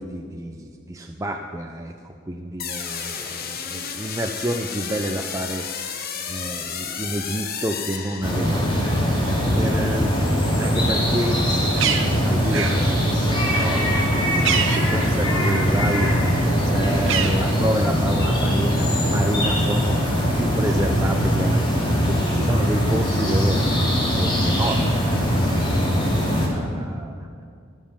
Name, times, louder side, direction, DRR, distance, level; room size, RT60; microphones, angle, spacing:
voice 1, 0.0-9.2 9.6-10.3 10.6-20.0 20.3-27.2, right 1 dB, 15° right, 3 dB, 0.5 m, -29 dB
sound 1, 2.6-8.8, left 6 dB, 45° left, 1.1 m, -32 dB
sound 2, 8.2-26.5, equal, 25° left, 2.7 m, -21 dB
Bird, 11.2-15.8 16.1-18.1, right 7 dB, 65° right, 1.0 m, -29 dB
18.5 x 7.5 x 7.2 m, 2.3 s
head